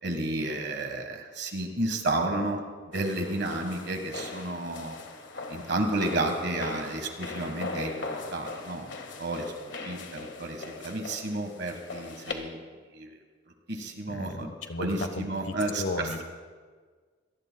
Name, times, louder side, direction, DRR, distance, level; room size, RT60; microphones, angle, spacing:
voice 1, 0.0-2.6 2.9-5.0 5.5-8.0 8.3-8.9 9.2-9.5 9.8-12.6 12.9-13.1 13.7-14.5 14.8-16.2, right 2 dB, 60° right, 4 dB, 1.6 m, -31 dB
sound 1, 2.9-12.3, left 3 dB, 65° left, 1.7 m, -40 dB
voice 2, 14.1-16.2, left 2 dB, 80° left, 7 dB, 1.2 m, -35 dB
24.5 x 19.0 x 2.3 m, 1.5 s
head